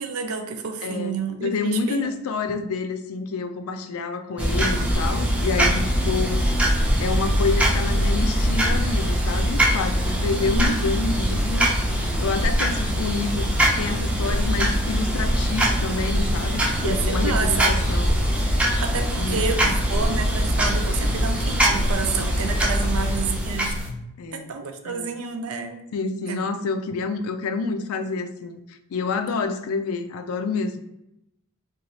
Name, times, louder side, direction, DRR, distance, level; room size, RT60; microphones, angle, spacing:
voice 1, 0.0-2.1 10.5-10.8 16.8-17.8 18.8-23.8 24.3-25.9 26.3-26.5, right 5 dB, 90° right, 6 dB, 0.5 m, -29 dB
voice 2, 0.8-11.7 12.2-18.2 19.2-19.7 23.0-23.1 24.2-24.5 24.8-25.1 25.9-28.6 28.9-30.8, left 4 dB, 85° left, 8 dB, 0.3 m, -28 dB
sound 1, 4.4-23.9, equal, 5° right, 0.5 m, -22 dB
2.6 x 2.4 x 3.0 m, 0.84 s
head